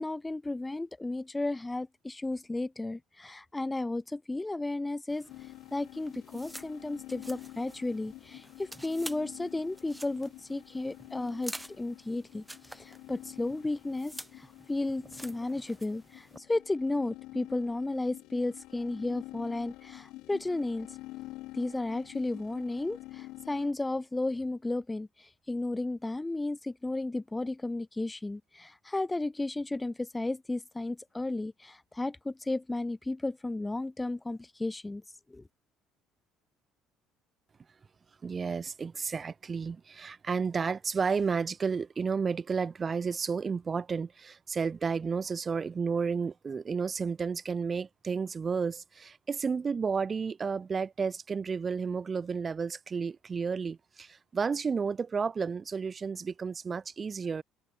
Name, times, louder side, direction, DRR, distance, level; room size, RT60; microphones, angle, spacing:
voice 1, 0.0-21.0 21.5-35.0 35.3-35.4, left 2 dB, 15° left, 0.4 m, -34 dB
sound 1, 5.1-16.4, right 1 dB, 5° right, 6.0 m, -49 dB
sound 2, 5.3-23.7, left 18 dB, 75° left, 1.7 m, -49 dB
voice 2, 38.2-57.4, right 5 dB, 30° right, 1.5 m, -32 dB
supercardioid pair, 90°, 0 cm